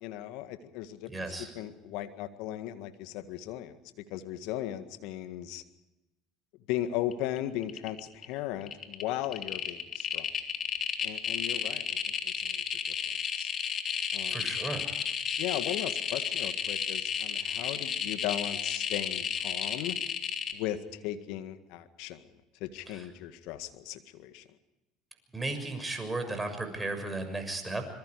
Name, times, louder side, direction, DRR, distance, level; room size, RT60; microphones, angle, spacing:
voice 1, 0.0-1.3 1.6-3.8 4.1-5.6 6.7-10.3 11.0-12.6 13.4-13.5 14.1-14.5 15.4-20.0 20.5-22.2 22.6-24.4, left 12 dB, 70° left, 10 dB, 1.8 m, -37 dB
voice 2, 1.1-1.5 14.3-14.8 22.9-23.1 25.3-27.9, right 2 dB, 10° right, 6 dB, 6.6 m, -35 dB
sound 1, 7.1-7.4 7.6-8.2 8.6-20.5, left 7 dB, 45° left, 3.1 m, -32 dB
25.5 x 23.0 x 4.9 m, 0.98 s
hypercardioid pair, 75°, 0 cm